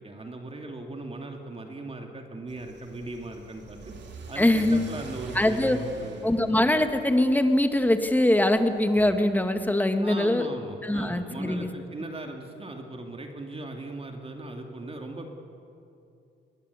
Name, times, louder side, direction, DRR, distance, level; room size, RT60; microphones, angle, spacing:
voice 1, 0.0-3.9 4.3-6.4 10.0-15.3, right 2 dB, 30° right, 3 dB, 2.6 m, -39 dB
Car / Accelerating revving vroom, 2.5-9.2, right 2 dB, 60° right, 3.5 m, -44 dB
voice 2, 4.4-4.8 5.3-5.8 6.2-10.5 10.8-11.7, left 1 dB, 10° left, 7 dB, 1.9 m, -22 dB
21.5 x 21.0 x 8.4 m, 2.6 s
cardioid pair, 90°, 20 cm